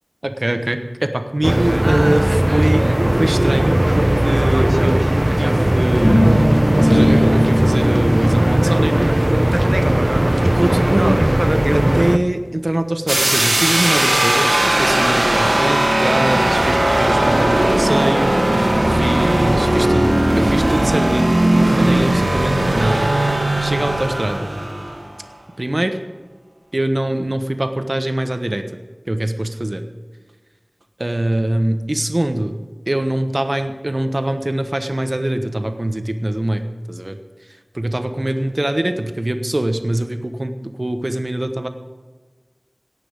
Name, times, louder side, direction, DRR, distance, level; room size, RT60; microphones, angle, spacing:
voice 1, 0.2-2.9 3.2-5.0 5.4-6.5 6.8-9.2 10.4-11.2 11.7-23.1 23.6-24.5 25.6-26.0 26.7-28.7 29.1-29.8 31.0-32.6 32.9-37.2 37.7-41.7, right 1 dB, 50° right, 7 dB, 1.1 m, -23 dB
sound 1, 1.4-12.2, right 1 dB, 30° right, 0.7 m, -17 dB
sound 2, 6.0-11.9, equal, 30° left, 3.8 m, -20 dB
sound 3, 13.1-25.1, right 1 dB, 75° right, 2.1 m, -17 dB
17.5 x 5.9 x 8.7 m, 1.4 s
wide cardioid pair, 40°, 0 cm